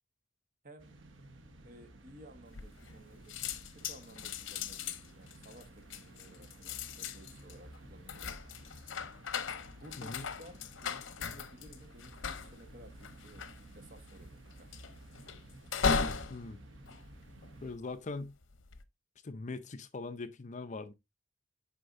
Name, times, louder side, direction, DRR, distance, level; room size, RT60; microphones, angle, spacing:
sound 1, 0.8-17.8, right 1 dB, 80° right, 1.1 m, -54 dB
voice 1, 1.6-8.3 9.6-13.5 13.7-14.8, right 1 dB, 45° right, 1.3 m, -56 dB
sound 2, 2.5-3.0 3.3-17.8 18.4-18.8, left 5 dB, 90° left, 0.7 m, -38 dB
voice 2, 17.6-18.4 19.2-20.9, left 3 dB, 40° left, 0.6 m, -41 dB
8.2 x 5.3 x 2.6 m
head